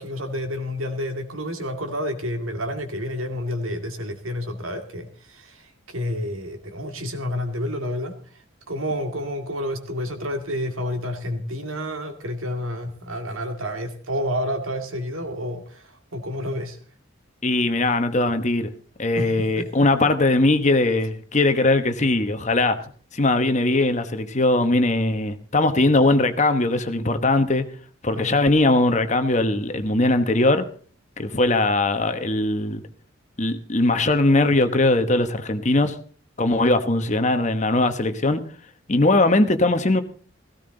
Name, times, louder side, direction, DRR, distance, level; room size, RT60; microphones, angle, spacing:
voice 1, 0.0-8.2 8.7-16.8 19.2-19.7 28.1-28.3, equal, 90° right, 2.4 m, -29 dB
voice 2, 17.4-18.7 19.0-22.8 23.1-27.7 28.0-30.7 31.2-32.8 33.4-36.0 36.4-38.4 38.9-40.0, left 2 dB, 35° left, 1.1 m, -20 dB
16.5 x 15.5 x 3.9 m
head